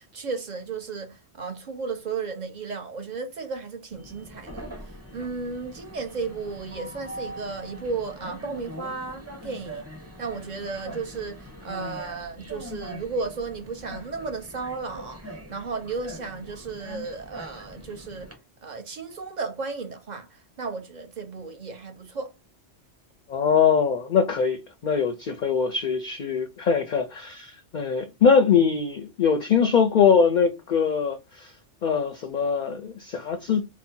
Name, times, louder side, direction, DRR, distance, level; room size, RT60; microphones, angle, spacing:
voice 1, 0.0-9.8 10.2-18.3 18.6-22.3, right 4 dB, 45° right, 0.8 m, -34 dB
Train, 3.9-18.3, equal, 15° right, 1.0 m, -42 dB
voice 2, 23.3-31.5 31.8-33.7, left 6 dB, 55° left, 0.5 m, -22 dB
4.1 x 2.0 x 4.3 m
omnidirectional pair, 1.2 m